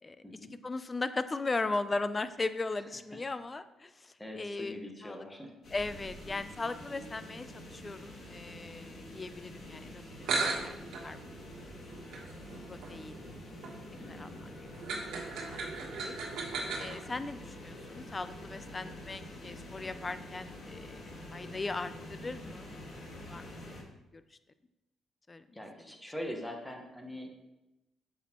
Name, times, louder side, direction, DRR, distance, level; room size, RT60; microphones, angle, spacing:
voice 1, 0.6-5.3 5.7-10.8 11.0-11.4 12.6-13.2 14.1-15.8 16.0-16.2 16.8-22.7 23.3-24.2 25.3-25.5, left 3 dB, 25° left, 13 dB, 0.5 m, -38 dB
voice 2, 4.2-5.5 9.6-10.0 14.0-14.3 16.3-16.6 25.5-27.3, equal, 5° left, 2 dB, 1.4 m, -43 dB
sound 1, 5.6-23.8, left 1 dB, 55° left, 2.0 m, -47 dB
sound 2, 9.9-10.0 10.2-17.0, right 4 dB, 80° right, 1.3 m, -37 dB
8.1 x 6.2 x 3.0 m, 0.98 s
cardioid pair, 90°, 0 cm